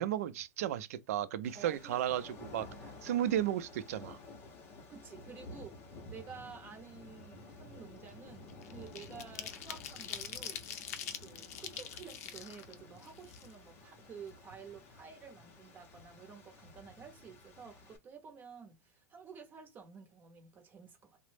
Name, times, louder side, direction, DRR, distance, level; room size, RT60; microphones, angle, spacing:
voice 1, 0.0-2.7 3.0-4.2, right 11 dB, 60° right, 0.5 m, -34 dB
sound 1, 1.4-18.0, left 2 dB, 25° left, 0.6 m, -53 dB
voice 2, 1.5-2.0 4.9-10.6 11.2-21.2, right 6 dB, 20° right, 0.7 m, -51 dB
sound 2, 6.9-7.1 7.5-13.9 14.3-14.4 14.7-15.7 16.0-16.1 16.4-16.7, left 9 dB, 65° left, 0.5 m, -45 dB
2.9 x 2.0 x 3.2 m
supercardioid pair, 160°, 9 cm